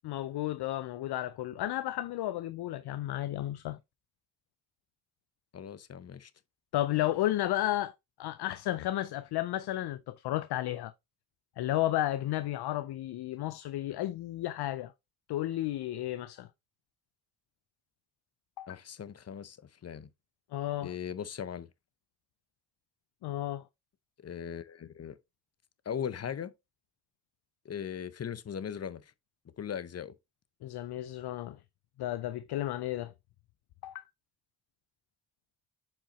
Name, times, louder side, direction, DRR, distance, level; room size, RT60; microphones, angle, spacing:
voice 1, 0.0-3.8 6.7-7.9 8.2-10.9 11.6-14.9 15.3-16.5 18.6-18.7 20.5-20.9 23.2-23.6 30.6-31.6 32.0-33.1 33.8-34.0, left 14 dB, 80° left, 0.5 m, -33 dB
voice 2, 5.5-6.3 18.7-20.1 20.8-21.7 24.2-25.2 25.9-26.5 27.6-29.1 29.6-30.1, left 8 dB, 40° left, 0.7 m, -39 dB
7.3 x 4.8 x 3.0 m
cardioid pair, 80°, 39 cm